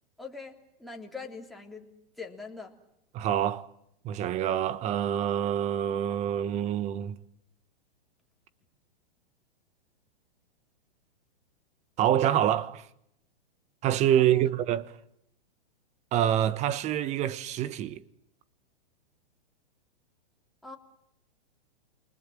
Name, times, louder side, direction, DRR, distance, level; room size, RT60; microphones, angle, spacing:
voice 1, 0.2-1.9 2.2-2.7 14.2-14.5 20.6-20.8, left 4 dB, ahead, 3.5 m, -42 dB
voice 2, 3.1-3.7 4.0-7.2 12.0-12.9 13.8-14.9 16.1-18.0, right 11 dB, 20° right, 1.3 m, -26 dB
29.5 x 24.5 x 7.6 m
hypercardioid pair, 150°, 30 cm